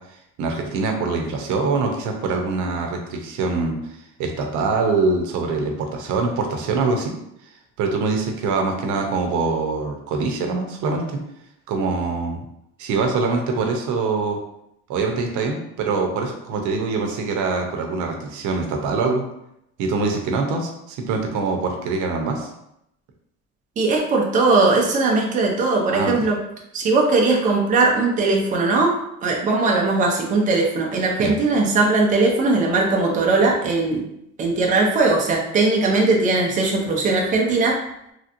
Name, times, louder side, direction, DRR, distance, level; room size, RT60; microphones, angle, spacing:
voice 1, 0.4-3.8 4.2-7.1 7.8-11.2 11.7-12.4 12.8-14.4 14.9-19.2 19.8-22.5 25.9-26.1 31.2-31.3, right 4 dB, 85° right, 2 dB, 0.6 m, -24 dB
voice 2, 23.8-26.4 26.7-28.9 29.2-34.0 34.4-37.8, right 3 dB, 25° right, -1 dB, 0.5 m, -19 dB
3.1 x 2.8 x 2.5 m, 0.79 s
cardioid pair, 175°, 29 cm